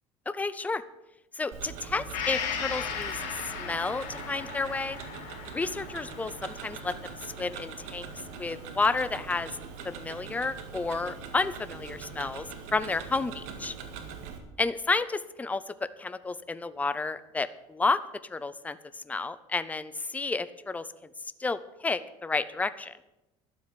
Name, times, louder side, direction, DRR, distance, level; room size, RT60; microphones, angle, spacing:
voice 1, 0.3-0.8 1.3-5.0 5.5-8.1 8.4-9.6 9.8-13.7 14.6-15.6 16.0-18.0 18.3-18.8 19.1-20.9 21.4-23.0, left 3 dB, 10° left, 15 dB, 0.6 m, -31 dB
Tick-tock, 1.5-14.4, right 6 dB, 80° right, 2.0 m, -42 dB
Gong, 2.1-9.8 10.2-10.3, left 8 dB, 85° left, 2.1 m, -38 dB
12.0 x 7.5 x 8.6 m, 0.95 s
cardioid pair, 125°, 12 cm